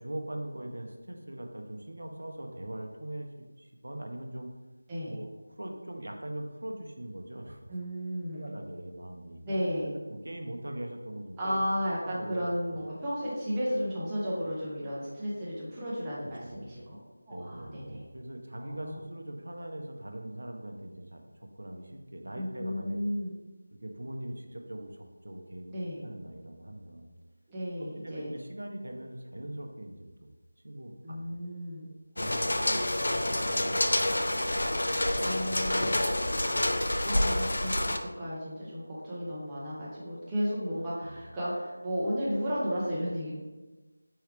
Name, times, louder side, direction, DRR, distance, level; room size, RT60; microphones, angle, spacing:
voice 1, 0.0-4.5 5.1-7.7 8.3-9.4 10.1-11.6 12.1-12.8 16.4-16.7 17.3-23.0 23.7-25.7 26.0-27.1 27.8-30.3 30.6-31.2 31.8-34.1 36.1-36.8 41.0-41.2, right 1 dB, 85° right, 3 dB, 0.7 m, -41 dB
voice 2, 4.9-5.2 7.7-8.5 9.4-9.9 11.4-17.0 17.3-18.1 18.5-19.0 22.3-23.3 25.7-26.0 27.5-28.3 31.0-31.8 35.2-36.1 37.0-43.3, equal, 10° right, -9 dB, 0.6 m, -33 dB
sound 1, 32.2-38.0, left 1 dB, 65° left, 0.4 m, -28 dB
4.6 x 3.3 x 3.1 m, 1.2 s
figure-of-eight pair, 175°, 0 cm